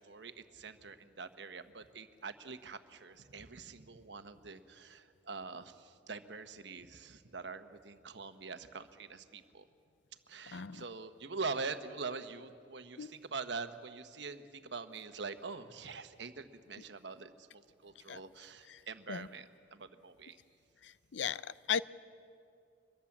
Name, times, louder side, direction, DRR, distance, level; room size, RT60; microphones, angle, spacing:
voice 1, 0.0-9.7 10.3-20.4, right 4 dB, 75° right, 9 dB, 1.2 m, -44 dB
voice 2, 10.5-10.8 13.0-13.1 18.1-18.2 18.7-18.8 19.1-19.3 20.8-21.8, left 7 dB, 85° left, 17 dB, 0.6 m, -37 dB
25.0 x 22.0 x 7.3 m, 2.4 s
head